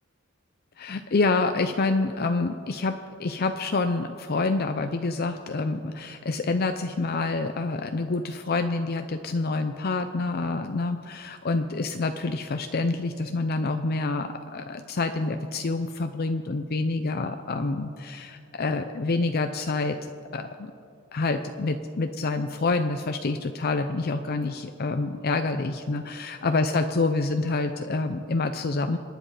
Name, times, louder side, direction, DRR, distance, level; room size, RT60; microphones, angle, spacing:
voice 1, 0.8-20.0 20.3-20.7 21.1-29.0, left 3 dB, 50° left, 7 dB, 0.6 m, -27 dB
26.0 x 10.0 x 4.9 m, 2.4 s
head